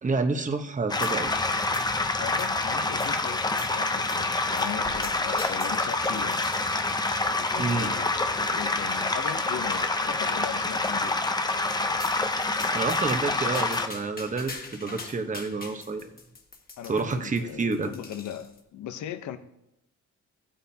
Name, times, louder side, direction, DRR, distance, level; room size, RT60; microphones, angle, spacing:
voice 1, 0.0-1.3 7.6-7.9 12.7-16.1 16.9-17.9, right 4 dB, 25° right, 1.1 m, -29 dB
sound 1, 0.9-13.9, left 2 dB, 15° left, 0.7 m, -27 dB
sound 2, 1.0-1.5 1.7-2.6 3.0-3.2 3.6-3.8 4.1-4.3 4.6-6.9 7.5-7.9 8.5-8.6 8.9-9.0 9.3-9.4 9.9-10.3 12.0-12.2 12.6-18.6, left 3 dB, 30° left, 1.9 m, -44 dB
voice 2, 2.2-6.6 7.4-11.3 16.8-19.4, left 10 dB, 70° left, 0.9 m, -38 dB
15.0 x 8.7 x 2.8 m
cardioid pair, 90°, 30 cm